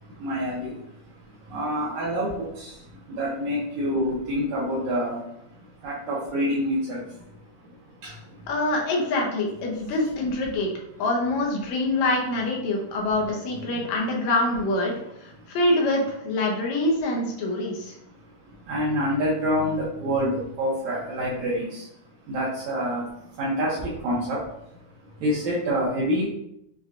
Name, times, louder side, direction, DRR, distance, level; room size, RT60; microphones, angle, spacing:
voice 1, 0.0-8.5 9.8-10.3 10.8-10.9 13.2-13.9 14.9-15.0 15.4-15.6 17.5-26.2, equal, 75° right, -7 dB, 1.9 m, -29 dB
voice 2, 8.5-10.7 11.0-14.9 15.2-17.9, left 2 dB, 75° left, -1 dB, 1.8 m, -25 dB
6.3 x 2.2 x 2.4 m, 0.79 s
omnidirectional pair, 3.7 m